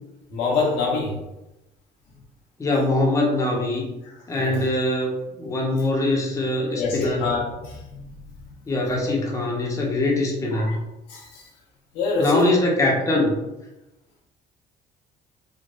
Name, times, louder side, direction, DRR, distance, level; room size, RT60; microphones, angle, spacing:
voice 1, 0.3-1.2 4.4-4.6 6.7-8.1 10.5-10.8 11.1-11.5 11.9-12.4, left 3 dB, 85° left, -3 dB, 0.8 m, -26 dB
voice 2, 2.6-3.9 4.3-7.2 8.7-10.8 12.2-13.4, left 2 dB, 20° left, -2 dB, 0.6 m, -22 dB
3.3 x 2.0 x 2.5 m, 0.95 s
cardioid pair, 110°, 17 cm